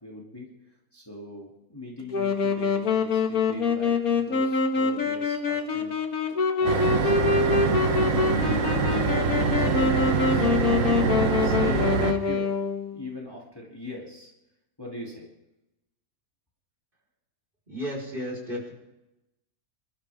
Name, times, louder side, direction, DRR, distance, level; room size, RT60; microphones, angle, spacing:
voice 1, 0.0-0.5 0.9-5.9 6.6-7.6 8.3-10.7 11.3-12.0 12.2-12.6 12.9-14.3 14.8-15.3, left 1 dB, 15° left, -3 dB, 2.6 m, -41 dB
Wind instrument woodwind instrument, 2.1-13.0, left 5 dB, 75° left, 2.0 m, -25 dB
sound 1, 6.6-12.1, right 4 dB, 60° right, 1.6 m, -24 dB
voice 2, 17.7-18.7, equal, 35° right, -3 dB, 4.8 m, -33 dB
27.0 x 13.0 x 3.6 m, 0.94 s
omnidirectional pair, 1.5 m